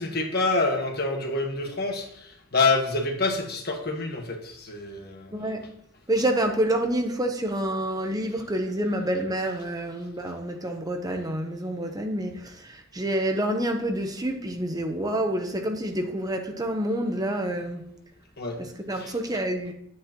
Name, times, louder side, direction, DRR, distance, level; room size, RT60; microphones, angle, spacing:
voice 1, 0.0-2.0 2.5-5.4 18.4-18.6 19.0-19.1, left 3 dB, 50° left, 2 dB, 1.5 m, -26 dB
voice 2, 5.3-5.6 6.1-17.9 18.6-19.7, right 1 dB, 20° right, 4 dB, 0.9 m, -28 dB
10.0 x 9.5 x 3.0 m, 0.70 s
head